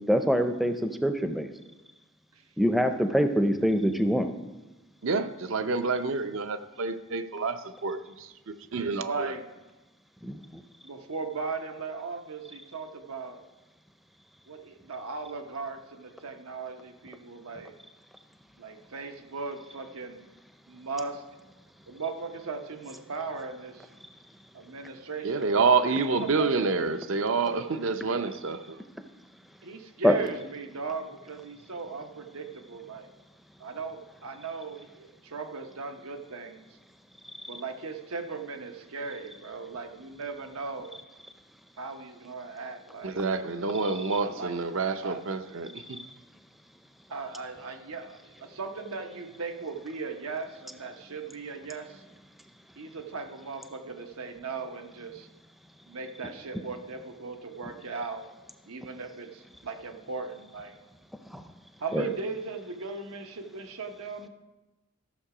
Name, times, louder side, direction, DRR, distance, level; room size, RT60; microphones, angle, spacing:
voice 1, 0.1-1.5 2.6-4.3 10.2-10.4 30.0-30.2 61.3-61.4 61.9-62.0, equal, ahead, 0.5 m, -24 dB
voice 2, 5.0-8.0 8.5-9.3 25.2-28.8 43.0-46.0, right 4 dB, 65° right, 0.6 m, -28 dB
voice 3, 8.8-9.4 10.8-13.4 14.5-17.7 18.6-20.2 20.7-21.2 21.9-23.9 24.5-25.5 25.8-26.7 28.1-28.3 29.6-33.1 33.6-36.7 37.5-40.9 41.8-43.2 44.2-44.5 45.0-45.2 47.1-52.0 52.8-55.3 55.9-58.2 58.7-60.8 61.8-64.3, right 4 dB, 85° right, 1.0 m, -38 dB
13.0 x 6.7 x 4.9 m
head